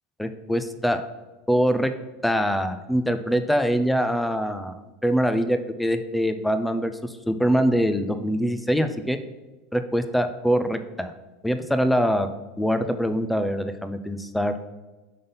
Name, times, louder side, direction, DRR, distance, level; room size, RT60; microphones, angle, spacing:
voice 1, 0.2-1.0 1.5-1.9 2.2-4.7 5.0-9.2 9.7-11.1 11.4-12.3 12.6-14.5, equal, 5° left, 9 dB, 0.5 m, -23 dB
5.6 x 3.8 x 5.3 m, 1.1 s
supercardioid pair, 120°, 0 cm